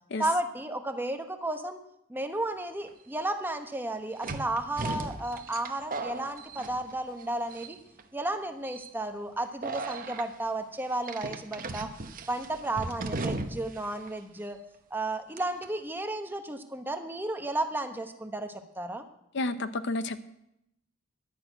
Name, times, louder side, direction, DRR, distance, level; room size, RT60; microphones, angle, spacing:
voice 1, 0.2-1.8 2.1-7.8 8.1-11.9 12.3-14.6 14.9-19.0, right 2 dB, 10° right, 1.0 m, -33 dB
sound 1, 2.9-3.0 4.2-7.2 7.5-8.0 8.6-8.9 9.6-10.2 11.0-13.8 14.1-14.2 15.4-15.6, right 3 dB, 45° right, 0.9 m, -36 dB
voice 2, 19.3-20.2, left 2 dB, 65° left, 0.7 m, -30 dB
11.5 x 6.4 x 9.0 m
head